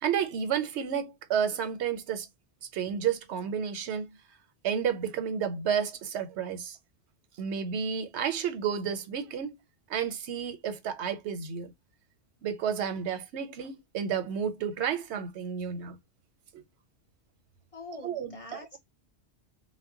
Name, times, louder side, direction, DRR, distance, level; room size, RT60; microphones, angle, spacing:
voice 1, 0.0-2.3 2.7-4.1 4.6-6.8 7.4-9.6 9.9-11.7 12.4-16.0 16.5-16.6 18.0-18.8, right 7 dB, 90° right, 0.9 m, -31 dB
voice 2, 17.7-18.8, left 3 dB, 35° left, 0.8 m, -45 dB
2.2 x 2.1 x 3.5 m
omnidirectional pair, 1.1 m